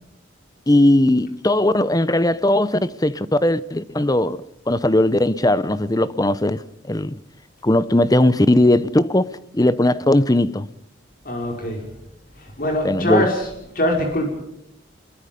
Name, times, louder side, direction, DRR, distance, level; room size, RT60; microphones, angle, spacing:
voice 1, 0.7-7.2 7.6-10.7 12.8-13.3, left 1 dB, 20° left, 0.7 m, -18 dB
voice 2, 11.3-11.8 12.4-13.4 13.8-14.3, left 1 dB, 45° left, 5.4 m, -22 dB
26.0 x 22.0 x 5.3 m
head